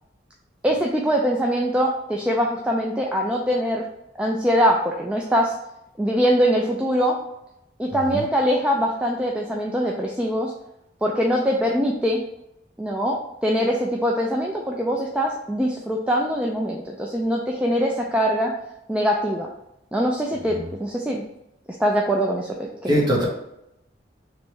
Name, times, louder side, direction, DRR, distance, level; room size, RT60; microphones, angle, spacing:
voice 1, 0.6-3.8 4.2-5.5 6.0-7.2 7.8-10.5 11.0-12.2 12.8-18.5 18.9-19.5 19.9-21.2 21.8-23.0, equal, 5° right, -1 dB, 0.4 m, -23 dB
voice 2, 7.9-8.2 20.5-20.7 22.9-23.2, equal, 25° right, -5 dB, 1.3 m, -23 dB
3.4 x 3.0 x 4.6 m, 0.83 s
head